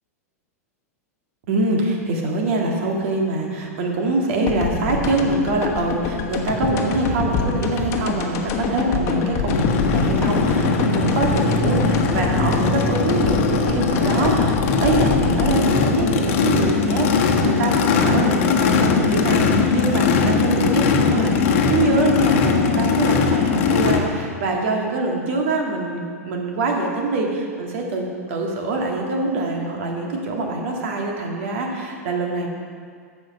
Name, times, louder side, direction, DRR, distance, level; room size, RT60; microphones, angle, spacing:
voice 1, 1.5-9.6 9.9-32.5, right 2 dB, 55° right, 1 dB, 1.9 m, -24 dB
sound 1, 4.5-17.3, left 4 dB, 35° left, 1.2 m, -26 dB
Race car auto racing / Idling / Accelerating revving vroom, 9.5-24.0, left 4 dB, 50° left, 1.2 m, -20 dB
14.5 x 5.3 x 5.3 m, 2.1 s
figure-of-eight pair, 95°, 9 cm